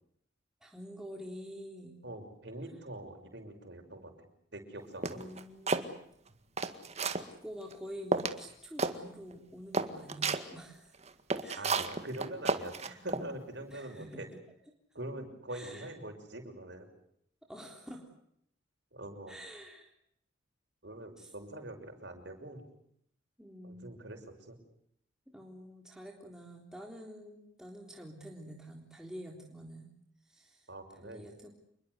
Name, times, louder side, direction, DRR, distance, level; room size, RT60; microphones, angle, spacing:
voice 1, 0.6-2.0 5.1-6.0 7.4-10.9 11.4-11.8 13.7-14.3 15.5-15.9 17.5-18.0 19.3-19.9 21.2-21.3 23.4-23.9 25.3-29.9 30.3-30.7 31.0-31.5, equal, 5° right, 0 dB, 3.7 m, -47 dB
voice 2, 2.0-5.2 11.6-14.3 14.9-16.9 18.9-19.3 20.8-22.7 23.6-24.6 30.7-31.3, right 1 dB, 60° right, 4 dB, 6.3 m, -44 dB
sound 1, 5.0-5.9 6.4-7.3 7.7-7.8 8.1-8.4 8.8-9.0 9.3-9.4 9.7-10.4 11.0-13.2, right 3 dB, 35° right, 1.9 m, -32 dB
28.0 x 22.5 x 8.1 m, 0.71 s
head